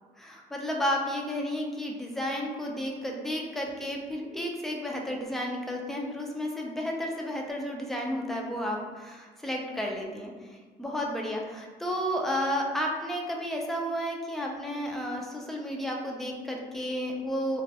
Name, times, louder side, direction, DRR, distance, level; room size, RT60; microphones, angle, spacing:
voice 1, 0.2-17.6, equal, ahead, -1 dB, 0.3 m, -32 dB
2.2 x 2.1 x 2.7 m, 1.4 s
cardioid pair, 110°, 17 cm